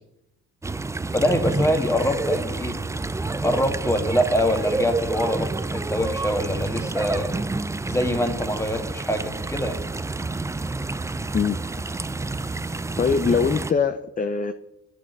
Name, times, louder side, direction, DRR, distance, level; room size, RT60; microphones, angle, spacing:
sound 1, 0.6-13.7, right 3 dB, 10° right, 0.4 m, -29 dB
voice 1, 1.1-2.8 3.4-7.3 7.9-9.8, equal, 10° left, 6 dB, 1.6 m, -24 dB
voice 2, 13.0-14.5, left 5 dB, 30° left, 9 dB, 0.6 m, -22 dB
9.3 x 6.3 x 7.5 m, 0.86 s
cardioid pair, 90°, 30 cm